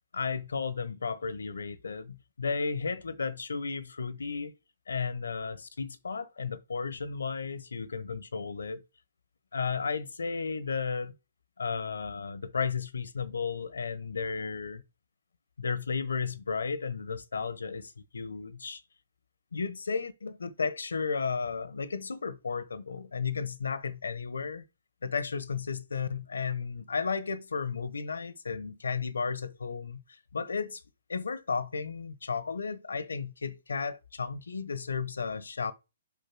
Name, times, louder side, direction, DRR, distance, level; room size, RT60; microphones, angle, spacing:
voice 1, 0.1-4.5 4.9-8.8 9.5-11.1 11.6-14.8 15.6-18.8 19.5-24.6 25.0-30.8 31.1-35.7, left 5 dB, 80° left, 1.0 m, -34 dB
7.1 x 5.3 x 6.1 m
hypercardioid pair, 135°, 0 cm